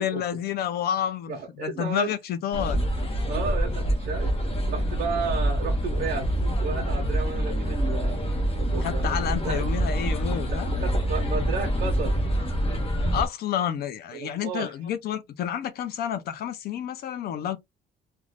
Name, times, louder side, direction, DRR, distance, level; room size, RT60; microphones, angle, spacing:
voice 1, 0.0-2.9 8.8-10.7 13.1-17.6, left 9 dB, 60° left, 0.5 m, -29 dB
voice 2, 1.3-2.1 3.3-4.3 4.6-6.3 6.6-9.6 10.5-12.2 14.1-14.7, right 5 dB, 55° right, 0.8 m, -33 dB
sound 1, 2.5-13.3, equal, 30° left, 0.9 m, -26 dB
2.5 x 2.3 x 3.1 m
cardioid pair, 160°, 19 cm